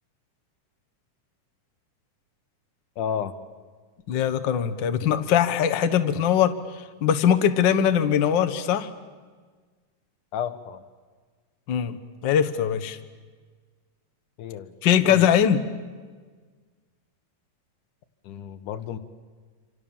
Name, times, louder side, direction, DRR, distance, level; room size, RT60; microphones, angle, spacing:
voice 1, 3.0-3.3 10.3-10.8 14.4-14.7 15.1-15.3 18.2-19.0, left 9 dB, 85° left, 10 dB, 2.7 m, -31 dB
voice 2, 4.1-6.5 7.0-8.9 11.7-12.0 12.2-13.0 14.8-15.6, left 9 dB, 55° left, 9 dB, 1.3 m, -21 dB
27.0 x 27.0 x 7.2 m, 1.5 s
omnidirectional pair, 3.5 m